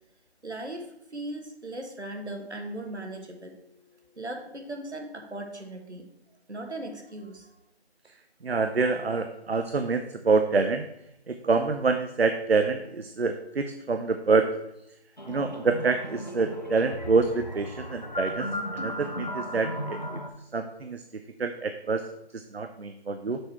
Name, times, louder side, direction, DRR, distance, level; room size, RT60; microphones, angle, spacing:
voice 1, 0.4-0.8 1.1-6.1 6.5-7.5, right 1 dB, 90° right, 3 dB, 1.6 m, -38 dB
voice 2, 8.4-10.9 11.3-14.5 15.3-18.5 18.7-20.2 20.5-21.0 21.4-22.0 22.3-23.4, right 4 dB, 65° right, 8 dB, 0.6 m, -26 dB
sound 1, 15.2-20.3, equal, 45° left, 0.6 m, -35 dB
6.3 x 6.2 x 4.2 m, 0.84 s
figure-of-eight pair, 180°, 33 cm